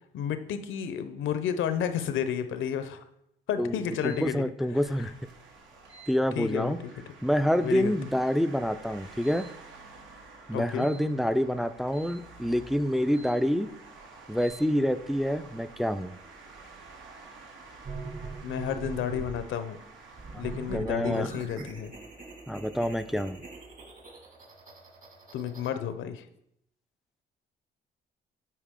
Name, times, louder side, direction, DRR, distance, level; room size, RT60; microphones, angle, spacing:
voice 1, 0.1-3.0 3.5-4.5 5.0-5.1 6.4-6.9 7.6-8.0 10.5-10.9 18.4-19.8 20.4-21.9 25.3-26.2, left 8 dB, 80° left, 10 dB, 0.7 m, -31 dB
sound 1, 3.9-4.2 5.8-6.1 7.4-7.7 9.2-9.5 10.7-11.0 11.9-12.2 13.1-13.4 14.3-14.6, right 4 dB, 60° right, 2.2 m, -52 dB
voice 2, 4.0-5.1 6.1-6.8 7.2-9.5 10.5-13.7 14.3-16.1 20.7-21.3 21.6-21.7 22.5-23.4, equal, ahead, 11 dB, 0.3 m, -27 dB
sound 2, 4.7-20.8, right 4 dB, 80° right, 1.4 m, -50 dB
sound 3, 17.8-19.4 20.1-25.7, right 3 dB, 40° right, 1.7 m, -42 dB
8.5 x 4.7 x 3.6 m, 0.76 s
cardioid pair, 90°, 20 cm